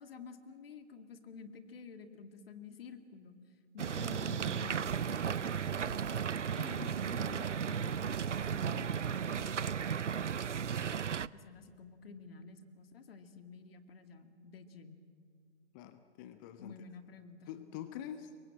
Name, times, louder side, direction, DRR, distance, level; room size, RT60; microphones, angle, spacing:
voice 1, 0.0-3.4 3.7-6.1 6.5-10.0 11.3-15.0 16.6-17.5, left 4 dB, 55° left, 8 dB, 2.2 m, -50 dB
sound 1, 3.8-11.3, right 7 dB, 80° right, 0.6 m, -35 dB
sound 2, 4.3-10.2, right 4 dB, 65° right, 3.9 m, -60 dB
voice 2, 15.7-16.7 17.5-18.5, left 10 dB, 15° left, 11 dB, 0.6 m, -45 dB
26.5 x 23.5 x 7.6 m, 2.2 s
figure-of-eight pair, 130°, 36 cm